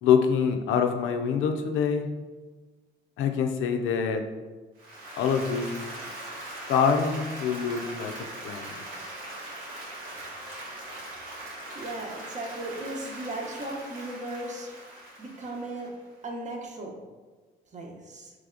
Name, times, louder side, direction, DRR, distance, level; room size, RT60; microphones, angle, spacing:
voice 1, 0.0-2.1 3.2-4.2 5.2-5.8 6.7-8.1 8.4-8.8, left 6 dB, 90° left, 6 dB, 0.5 m, -25 dB
Applause, 4.8-16.1, right 1 dB, 85° right, 1.3 m, -41 dB
voice 2, 11.7-14.7 15.2-15.9 16.2-17.0 17.7-18.3, right 1 dB, 35° right, 1 dB, 0.8 m, -36 dB
3.4 x 3.2 x 3.7 m, 1.3 s
cardioid pair, 90°, 20 cm